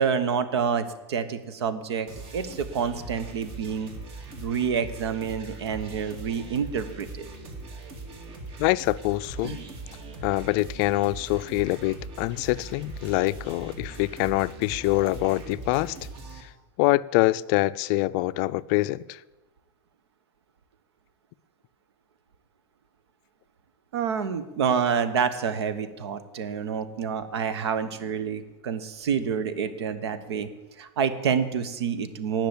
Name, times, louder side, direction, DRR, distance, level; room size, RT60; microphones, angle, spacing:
voice 1, 0.0-2.1 2.3-3.9 4.4-7.3 9.4-9.7 23.9-30.5 30.8-32.5, right 6 dB, 85° right, 1.1 m, -28 dB
sound 1, 2.1-16.4, right 3 dB, 45° right, 2.4 m, -41 dB
voice 2, 8.6-9.6 10.2-16.0 16.4-16.5 16.8-19.2, left 19 dB, 50° left, 0.4 m, -25 dB
10.5 x 6.0 x 8.4 m
hypercardioid pair, 120°, 14 cm